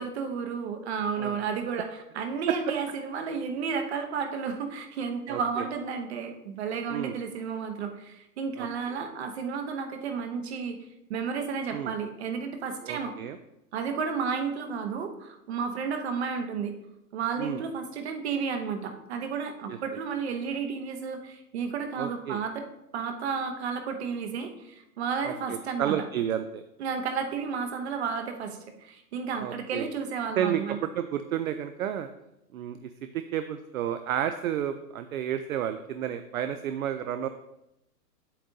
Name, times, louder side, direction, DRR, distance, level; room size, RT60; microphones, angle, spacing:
voice 1, 0.0-10.8 11.1-13.1 13.7-16.7 17.1-22.7 22.9-26.0 26.8-30.8, right 5 dB, 40° right, 7 dB, 0.9 m, -32 dB
voice 2, 5.3-5.7 6.9-7.2 8.6-9.0 11.7-11.9 12.8-13.4 17.4-17.6 19.7-19.8 22.0-22.4 25.2-26.6 29.4-29.9 30.4-32.1 32.5-37.3, right 10 dB, 60° right, 10 dB, 0.5 m, -31 dB
8.4 x 7.6 x 2.7 m, 0.87 s
hypercardioid pair, 165°, 49 cm